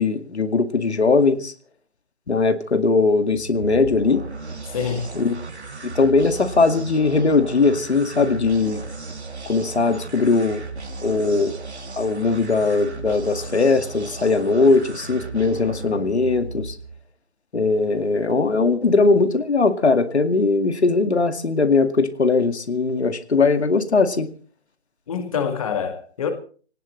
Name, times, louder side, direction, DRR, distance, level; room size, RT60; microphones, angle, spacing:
voice 1, 0.0-1.5 2.3-4.2 5.1-5.5 5.8-8.8 9.5-10.7 11.0-11.5 12.0-16.8 17.5-24.3, left 3 dB, 75° left, 2.2 m, -20 dB
sound 1, 3.2-17.0, right 3 dB, 90° right, 3.5 m, -35 dB
voice 2, 4.7-5.1 25.1-26.3, left 6 dB, 30° left, 2.1 m, -26 dB
23.5 x 18.5 x 3.2 m
figure-of-eight pair, 160°, 33 cm